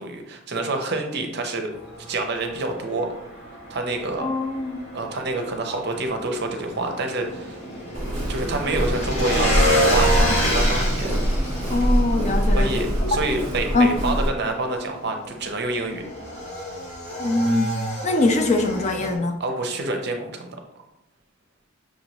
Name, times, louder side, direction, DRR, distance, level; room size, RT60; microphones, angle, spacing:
voice 1, 0.0-1.7 2.1-3.1 3.7-4.3 4.9-7.6 8.3-11.2 12.5-16.0 19.4-20.6, right 2 dB, 50° right, 4 dB, 0.6 m, -27 dB
Motorcycle / Engine, 1.7-19.1, equal, 70° left, 1.6 m, -29 dB
voice 2, 4.2-4.8 11.7-13.2 13.7-14.0 17.2-17.8 18.0-19.4, left 2 dB, 35° left, 4 dB, 0.4 m, -22 dB
Walk footsteps, 7.9-14.3, equal, 30° right, 1.3 m, -24 dB
6.0 x 2.6 x 3.0 m, 0.86 s
head